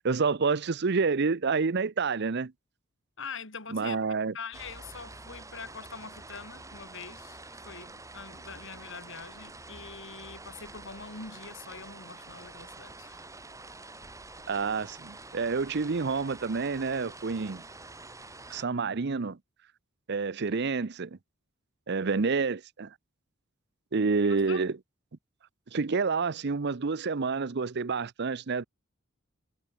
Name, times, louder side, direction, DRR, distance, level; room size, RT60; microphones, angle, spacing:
voice 1, 0.0-2.5 3.7-4.3 14.5-17.6 18.5-19.4 20.1-21.2 21.9-22.9 23.9-24.7 25.7-28.6, right 4 dB, 55° right, 0.7 m, -28 dB
voice 2, 3.2-4.0 4.3-13.3 24.5-24.6, left 5 dB, 65° left, 3.5 m, -44 dB
sound 1, 4.5-18.6, right 2 dB, 15° right, 3.2 m, -47 dB
head